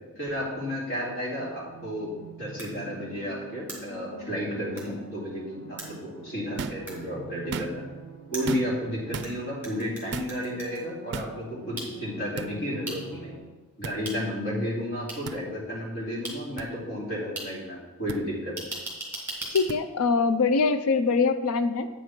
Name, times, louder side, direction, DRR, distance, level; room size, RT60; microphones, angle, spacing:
voice 1, 0.2-7.8 8.3-13.4 13.8-18.6, equal, 55° left, -6 dB, 2.8 m, -32 dB
sound 1, 1.3-13.4, right 2 dB, 20° left, 1.3 m, -45 dB
sound 2, 2.6-2.7 3.7-3.8 4.8-4.9 5.8-5.9 6.9-7.0 8.3-9.3 9.6-10.8 11.8-11.9 12.9-13.0 14.0-14.2 15.1-15.2 16.2-16.3 17.4-17.5 18.6-19.6, right 2 dB, 10° right, 2.0 m, -36 dB
sound 3, 6.6-6.9 7.4-7.9 8.5-8.8 9.1-9.3 10.1-10.4 11.1-11.4 12.4-12.5 13.8-14.0 15.2-15.4 16.6-16.7 18.1-18.2 19.7-19.8, right 4 dB, 50° right, 0.4 m, -34 dB
voice 2, 19.5-21.9, left 4 dB, 75° left, 11 dB, 0.5 m, -23 dB
8.5 x 5.1 x 6.0 m, 1.2 s
head